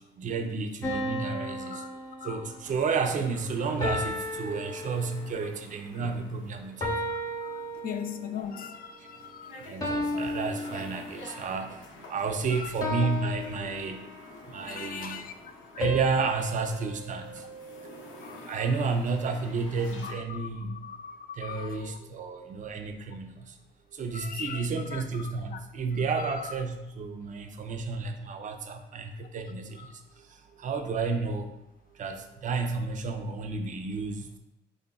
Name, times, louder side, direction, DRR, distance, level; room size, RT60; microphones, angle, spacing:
voice 1, 0.0-1.9 2.2-6.9 9.7-11.8 12.1-14.1 14.5-15.2 15.8-17.4 18.5-20.8 21.4-23.4 23.9-29.9 30.6-31.5 32.0-34.3, right 4 dB, 40° right, 0.4 m, -31 dB
sound 1, 0.8-2.8 3.8-5.5 6.8-8.4 9.8-11.5 12.8-14.4 15.8-18.1, left 1 dB, 20° left, 0.9 m, -34 dB
sound 2, 2.7-20.1, left 2 dB, 90° left, 0.7 m, -49 dB
voice 2, 7.1-9.6 12.5-12.7 14.6-15.3 15.7-15.8 18.2-18.5 20.0-22.0 24.1-25.6 26.2-26.3 29.8-30.0, left 7 dB, 45° left, 0.4 m, -40 dB
4.0 x 3.3 x 2.2 m
cardioid pair, 90°, 20 cm